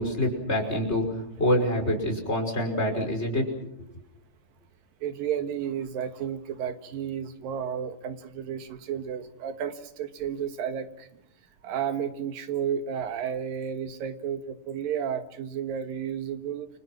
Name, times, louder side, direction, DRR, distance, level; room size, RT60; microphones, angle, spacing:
voice 1, 0.0-3.5, left 1 dB, 15° left, 2 dB, 5.7 m, -26 dB
voice 2, 5.0-11.1 11.6-16.7, right 8 dB, 85° right, 8 dB, 3.3 m, -32 dB
29.5 x 25.0 x 6.1 m, 0.77 s
omnidirectional pair, 3.9 m